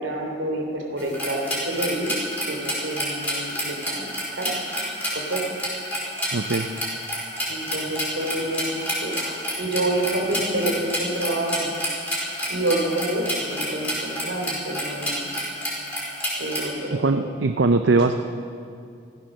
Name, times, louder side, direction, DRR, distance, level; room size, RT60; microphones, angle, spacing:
voice 1, 0.0-2.1 2.5-4.6 5.1-5.4 7.5-11.7 12.5-15.3 16.4-17.3, right 1 dB, 85° right, 1 dB, 3.1 m, -28 dB
sound 1, 1.0-16.7, equal, 10° left, 4.3 m, -29 dB
voice 2, 6.3-6.7 17.0-18.2, right 3 dB, 70° right, 7 dB, 0.6 m, -20 dB
15.0 x 14.5 x 6.5 m, 2.4 s
head